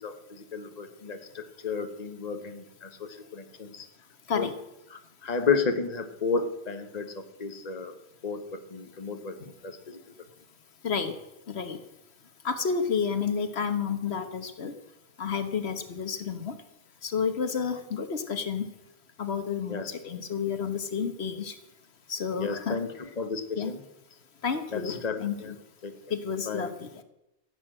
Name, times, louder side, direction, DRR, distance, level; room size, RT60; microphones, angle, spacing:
voice 1, 0.0-3.9 4.3-4.5 4.9-7.9 8.2-9.4 9.6-10.0 19.7-19.9 22.4-23.8 24.7-25.5 25.8-25.9 26.5-26.7, left 5 dB, 40° left, 7 dB, 1.3 m, -32 dB
voice 2, 11.5-11.8 12.4-14.7 15.2-16.6 17.0-18.7 19.2-21.5 22.1-22.8 23.6-23.7 24.4-25.6 26.1-26.9, left 6 dB, 80° left, 9 dB, 1.4 m, -30 dB
16.0 x 8.5 x 7.7 m, 0.90 s
omnidirectional pair, 1.1 m